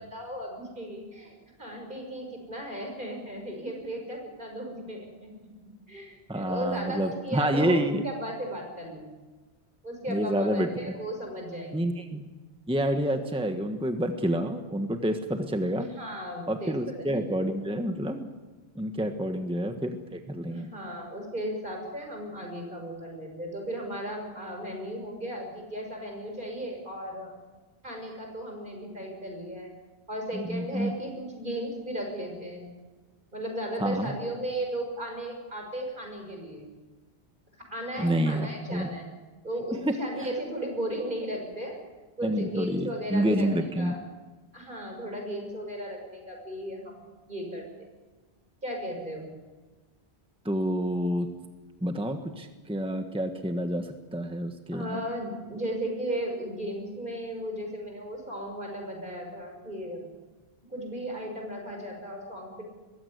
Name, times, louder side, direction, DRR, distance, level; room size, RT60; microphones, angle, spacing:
voice 1, 0.0-5.3 5.9-9.1 9.8-11.9 15.8-17.3 19.2-19.3 20.5-27.3 27.8-29.7 30.1-32.6 33.3-36.7 37.7-39.1 39.4-41.7 42.2-44.0 44.5-47.0 47.3-47.9 48.6-49.3 54.7-60.0 60.7-62.6, right 1 dB, 50° right, 2 dB, 6.4 m, -36 dB
voice 2, 6.3-8.0 10.1-10.7 11.7-12.2 12.7-15.9 16.5-18.3 18.7-20.7 30.3-30.9 33.8-34.1 38.0-38.9 40.2-40.3 42.2-44.0 50.4-51.3 51.8-55.0, right 1 dB, 5° right, 6 dB, 1.3 m, -28 dB
21.5 x 16.0 x 9.6 m, 1.3 s
omnidirectional pair, 1.1 m